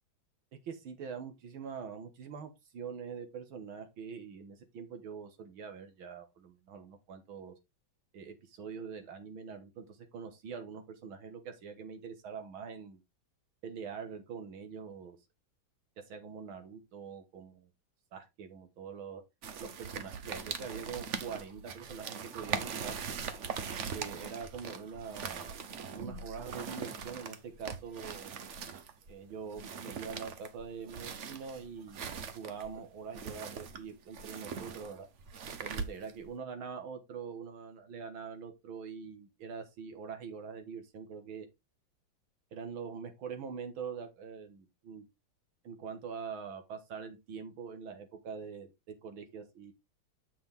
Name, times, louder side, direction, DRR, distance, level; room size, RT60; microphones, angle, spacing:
voice 1, 0.6-7.5 8.1-13.0 13.6-15.2 16.0-17.7 18.1-19.2 19.6-23.0 23.6-25.6 25.9-28.3 29.1-35.1 35.6-41.5 42.5-45.1 45.6-48.7 49.0-49.7, right 6 dB, 85° right, 2.2 m, -44 dB
gear-friction, 19.4-36.3, right 6 dB, 60° right, 0.8 m, -41 dB
7.6 x 6.0 x 3.5 m
omnidirectional pair, 2.2 m